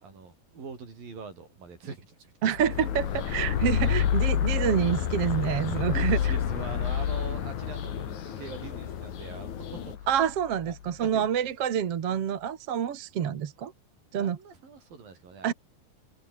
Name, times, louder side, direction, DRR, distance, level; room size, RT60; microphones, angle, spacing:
voice 1, 0.0-2.5 5.8-10.1 10.7-10.8 11.0-11.2 14.1-15.5, right 5 dB, 70° right, 7.5 m, -43 dB
voice 2, 2.4-6.2 10.1-13.7 14.1-14.4 15.4-15.5, right 9 dB, 50° right, 2.2 m, -27 dB
sound 1, 2.6-10.9, left 9 dB, 75° left, 4.1 m, -29 dB
sound 2, 2.7-10.0, left 8 dB, 55° left, 3.5 m, -40 dB
omnidirectional pair, 4.2 m